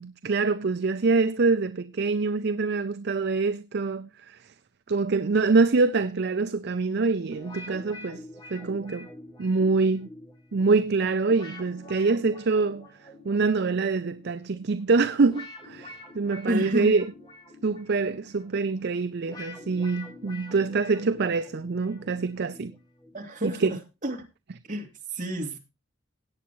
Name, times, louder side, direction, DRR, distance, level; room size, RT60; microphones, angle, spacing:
voice 1, 0.0-4.4 4.9-8.2 8.5-9.1 9.4-10.1 10.5-12.9 13.3-17.1 17.6-22.7 23.6-23.7, right 4 dB, 55° right, 0.5 m, -25 dB
sound 1, 7.3-23.2, left 2 dB, 20° left, 2.5 m, -46 dB
voice 2, 16.5-16.9 23.1-24.2 24.7-25.6, right 1 dB, 40° right, 2.7 m, -30 dB
17.0 x 8.6 x 3.1 m
head